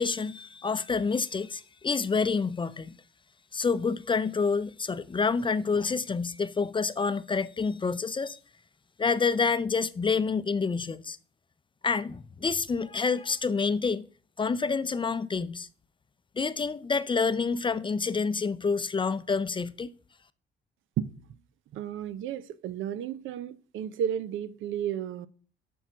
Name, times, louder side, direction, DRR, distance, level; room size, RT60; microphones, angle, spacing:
voice 1, 0.0-2.9 3.5-8.4 9.0-11.2 11.8-14.1 14.4-15.7 16.4-19.9, left 5 dB, 25° left, 0.5 m, -28 dB
voice 2, 21.7-25.3, right 9 dB, 80° right, 0.7 m, -33 dB
7.1 x 5.5 x 6.0 m
cardioid pair, 90°, 20 cm